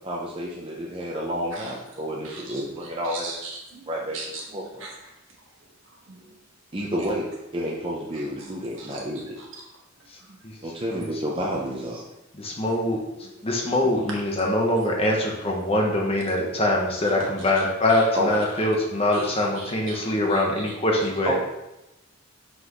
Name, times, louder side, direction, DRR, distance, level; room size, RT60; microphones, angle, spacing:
voice 1, 0.0-3.3 3.9-4.2 4.5-4.9 6.7-7.2 7.5-9.4 10.6-12.0 18.1-18.4 21.3-21.4, equal, 25° right, -3 dB, 0.7 m, -29 dB
voice 2, 2.2-3.8 4.1-4.9 6.1-6.3 8.1-9.0 9.4-9.5 13.2-13.3 17.9-18.0 19.1-19.3 19.5-20.6, right 3 dB, 75° right, -2 dB, 1.7 m, -40 dB
voice 3, 12.4-13.0 13.4-21.3, left 1 dB, 30° left, 0 dB, 1.1 m, -23 dB
5.8 x 5.6 x 3.2 m, 0.93 s
head